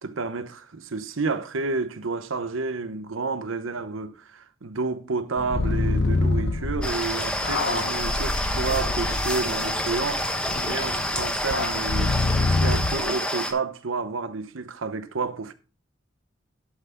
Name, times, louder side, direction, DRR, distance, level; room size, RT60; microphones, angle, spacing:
voice 1, 0.0-10.3 10.7-15.5, right 4 dB, 75° right, 0.9 m, -30 dB
sound 1, 5.4-13.0, left 2 dB, 60° left, 0.8 m, -27 dB
sound 2, 6.8-13.5, left 1 dB, 5° left, 1.1 m, -28 dB
11.5 x 5.7 x 3.7 m
head